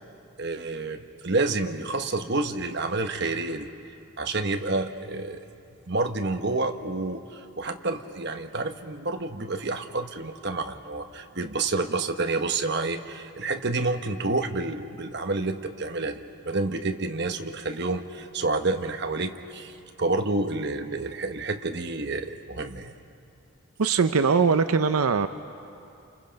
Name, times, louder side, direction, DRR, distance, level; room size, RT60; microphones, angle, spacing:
voice 1, 0.4-3.7 4.2-5.5 5.9-7.2 7.6-19.7 20.0-22.9, right 3 dB, 50° right, 6 dB, 1.1 m, -29 dB
voice 2, 23.8-25.3, right 5 dB, 85° right, 10 dB, 0.6 m, -21 dB
29.0 x 28.0 x 5.2 m, 2.7 s
head